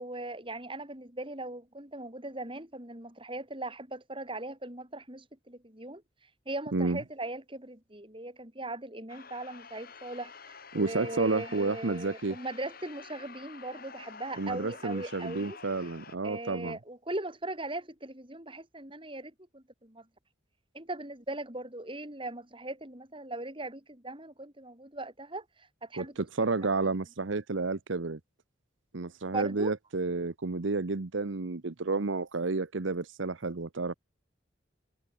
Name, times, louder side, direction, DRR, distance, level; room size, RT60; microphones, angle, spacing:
voice 1, 0.0-6.0 6.5-15.6 16.2-20.1 20.7-26.1 26.8-26.9 29.3-29.7, right 2 dB, 25° right, 6.0 m, -39 dB
sound 1, 9.1-16.2, left 5 dB, 50° left, 7.0 m, -49 dB
voice 2, 10.7-12.4 14.4-16.8 26.0-28.2 28.9-33.9, right 3 dB, 80° right, 1.0 m, -31 dB
head